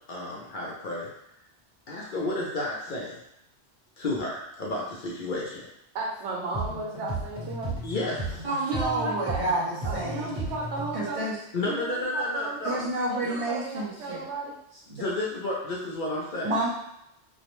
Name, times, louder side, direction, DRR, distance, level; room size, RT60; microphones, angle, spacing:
voice 1, 0.1-1.1 1.9-3.2 4.0-5.7 7.8-8.4 11.5-12.8 13.2-13.4 14.9-16.6, left 2 dB, 55° left, -4 dB, 0.6 m, -31 dB
voice 2, 5.9-7.7 8.7-9.4 9.8-11.3 11.7-14.6, right 3 dB, 80° right, -1 dB, 0.9 m, -34 dB
sound 1, 6.5-11.1, right 2 dB, 20° right, 0.7 m, -34 dB
voice 3, 8.4-10.5 10.9-11.4 12.6-14.2 16.4-16.7, right 2 dB, 55° right, -7 dB, 0.3 m, -29 dB
2.4 x 2.0 x 3.0 m, 0.81 s
omnidirectional pair, 1.2 m